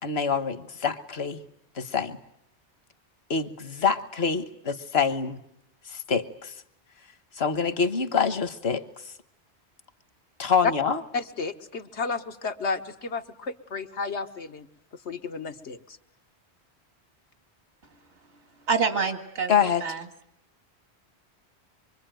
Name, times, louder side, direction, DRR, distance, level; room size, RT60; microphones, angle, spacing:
voice 1, 0.0-1.4 1.8-2.2 3.3-5.4 5.9-6.5 7.4-8.8 10.4-11.0 19.5-19.8, left 6 dB, 70° left, 12 dB, 1.5 m, -26 dB
voice 2, 11.1-14.7 15.0-15.8, left 4 dB, 90° left, 7 dB, 1.6 m, -32 dB
voice 3, 18.7-20.1, right 5 dB, 85° right, 7 dB, 2.4 m, -27 dB
25.0 x 24.0 x 9.1 m, 0.76 s
omnidirectional pair, 1.1 m